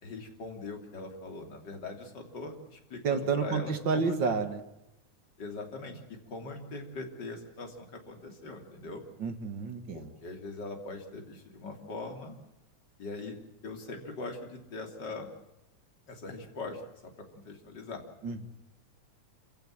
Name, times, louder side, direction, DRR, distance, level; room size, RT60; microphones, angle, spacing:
voice 1, 0.0-4.3 5.4-9.0 9.9-12.4 13.0-13.4 13.6-15.3 16.1-18.0, left 3 dB, 35° left, 3 dB, 3.4 m, -41 dB
voice 2, 3.0-4.6 9.2-10.1 18.2-18.5, right 5 dB, 45° right, 8 dB, 2.1 m, -30 dB
27.5 x 16.0 x 7.5 m, 0.94 s
omnidirectional pair, 3.5 m